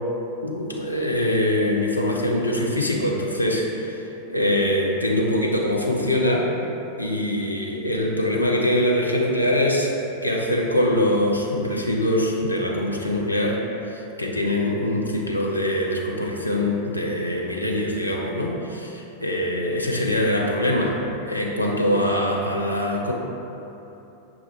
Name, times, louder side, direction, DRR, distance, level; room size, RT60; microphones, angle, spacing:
voice 1, 0.4-6.5 7.0-9.9 10.2-13.6 13.9-23.1, left 1 dB, 85° left, -2 dB, 0.5 m, -23 dB
5.9 x 2.3 x 3.4 m, 3.0 s
figure-of-eight pair, 90°, 0 cm